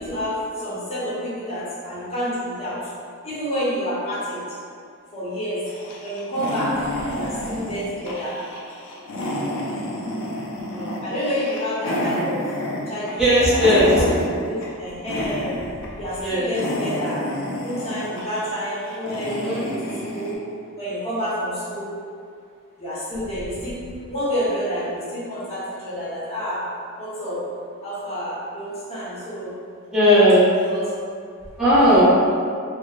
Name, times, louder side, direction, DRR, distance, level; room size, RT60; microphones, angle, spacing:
voice 1, 0.0-2.8 3.2-4.4 5.1-5.6 6.0-6.7 7.1-8.3 11.0-12.4 12.9-15.6 16.0-19.8 20.1-20.4 20.8-21.9 22.8-23.8 24.1-26.6 27.0-27.4 27.8-29.5 30.7-30.9, equal, 30° left, -10 dB, 0.9 m, -29 dB
sound 1, 5.7-14.8 15.1-15.9 16.2-20.4, left 1 dB, 60° left, 0.4 m, -29 dB
voice 2, 10.7-11.0 13.2-14.0 16.2-16.5 19.3-19.7 29.9-30.5 31.6-32.0, equal, 5° right, -13 dB, 0.8 m, -17 dB
3.0 x 2.0 x 2.3 m, 2.3 s
head